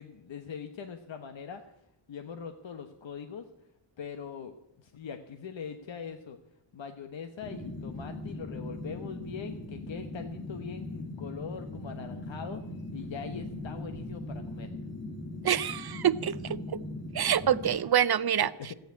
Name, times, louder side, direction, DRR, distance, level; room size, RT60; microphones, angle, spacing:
voice 1, 0.0-1.6 2.1-3.4 4.0-6.4 6.7-12.6 12.9-14.7 18.4-18.7, left 6 dB, 65° left, 6 dB, 1.2 m, -42 dB
sound 1, 7.4-17.8, left 2 dB, 25° left, 1.7 m, -40 dB
voice 2, 15.4-16.8 17.1-18.7, right 9 dB, 50° right, 16 dB, 0.7 m, -26 dB
14.5 x 9.2 x 9.3 m, 0.81 s
wide cardioid pair, 90°, 48 cm